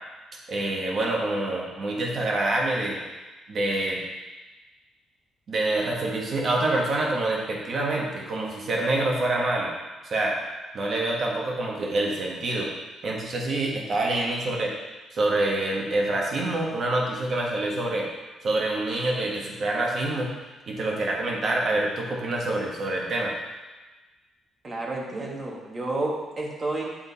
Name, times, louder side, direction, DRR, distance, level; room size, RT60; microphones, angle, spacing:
voice 1, 0.5-3.0 3.5-4.0 5.5-9.7 10.0-10.4 10.7-12.7 13.0-14.7 15.1-18.1 18.4-20.3 20.7-23.4, right 2 dB, 55° right, -2 dB, 1.6 m, -26 dB
voice 2, 24.6-26.8, right 2 dB, 35° right, -2 dB, 1.6 m, -30 dB
8.8 x 3.7 x 4.2 m, 1.2 s
cardioid pair, 90°, 0 cm